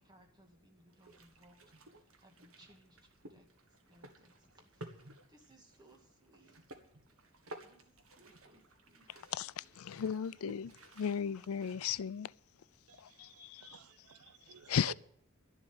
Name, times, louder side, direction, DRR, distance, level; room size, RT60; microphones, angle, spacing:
voice 1, 0.0-1.6 1.9-3.5 3.9-6.7 7.6-9.1 9.4-9.8 10.2-10.4, right 1 dB, 20° right, 2.0 m, -65 dB
sound 1, 0.9-12.2, right 1 dB, 75° right, 1.6 m, -56 dB
voice 2, 9.3-10.7 11.0-12.3 13.2-13.8 14.7-14.9, left 7 dB, 80° left, 0.4 m, -35 dB
voice 3, 12.9-14.9, right 6 dB, 90° right, 0.7 m, -53 dB
12.0 x 7.4 x 9.6 m
head